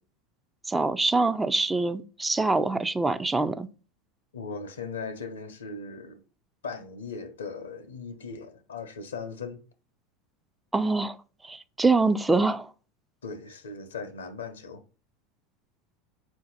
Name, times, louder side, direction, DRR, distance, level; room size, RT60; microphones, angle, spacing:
voice 1, 0.6-3.7 10.7-11.2 11.4-12.7, right 3 dB, 15° right, 0.3 m, -24 dB
voice 2, 4.3-6.2 6.6-9.6 13.2-14.8, left 4 dB, 85° left, 0.6 m, -38 dB
4.3 x 2.5 x 3.9 m
hypercardioid pair, 85°, 0 cm